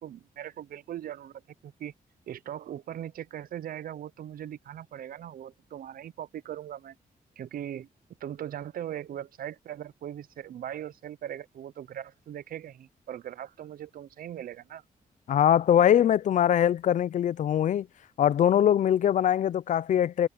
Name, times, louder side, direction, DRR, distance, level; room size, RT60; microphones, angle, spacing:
voice 1, 0.0-1.9 2.3-6.9 7.4-7.9 8.2-14.8, right 11 dB, 75° right, 0.6 m, -40 dB
voice 2, 15.3-17.9 18.2-20.3, left 10 dB, 55° left, 0.4 m, -22 dB
wide cardioid pair, 160°, 15 cm